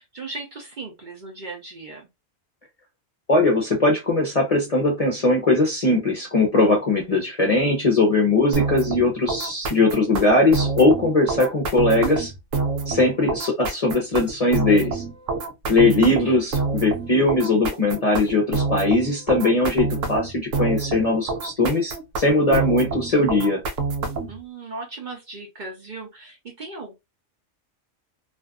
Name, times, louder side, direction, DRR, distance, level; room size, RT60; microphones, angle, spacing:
voice 1, 0.0-2.1 15.7-16.4 24.3-26.9, right 3 dB, 45° right, 0.7 m, -37 dB
voice 2, 3.3-12.3 12.9-15.0 15.7-23.6, left 2 dB, 40° left, 0.6 m, -20 dB
sound 1, 8.5-24.4, right 4 dB, 90° right, 1.0 m, -27 dB
2.5 x 2.4 x 2.2 m
omnidirectional pair, 1.3 m